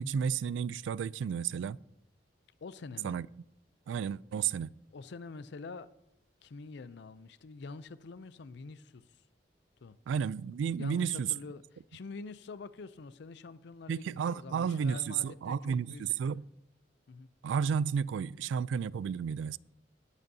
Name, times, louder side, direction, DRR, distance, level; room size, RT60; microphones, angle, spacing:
voice 1, 0.0-1.8 3.0-3.3 3.9-4.8 10.1-11.3 13.9-16.4 17.4-19.6, right 7 dB, 85° right, 0.3 m, -32 dB
voice 2, 2.6-3.2 4.9-5.9 6.4-9.3 9.8-10.0 10.8-11.6 11.9-16.0 17.1-17.3, left 4 dB, 70° left, 0.5 m, -46 dB
19.5 x 7.8 x 2.7 m
head